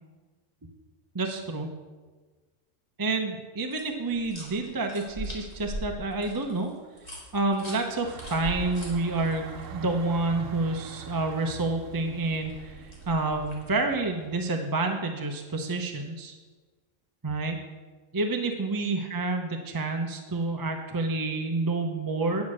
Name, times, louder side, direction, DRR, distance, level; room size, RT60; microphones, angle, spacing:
voice 1, 1.1-1.7 3.0-6.7 7.3-16.4 17.2-17.6 18.1-22.5, right 3 dB, 25° right, 4 dB, 0.5 m, -29 dB
sound 1, 3.7-9.7 12.2-13.7, right 1 dB, 30° left, 2.1 m, -41 dB
sound 2, 8.0-14.5, right 6 dB, 75° right, 1.1 m, -43 dB
9.5 x 6.0 x 6.2 m, 1.3 s
omnidirectional pair, 1.4 m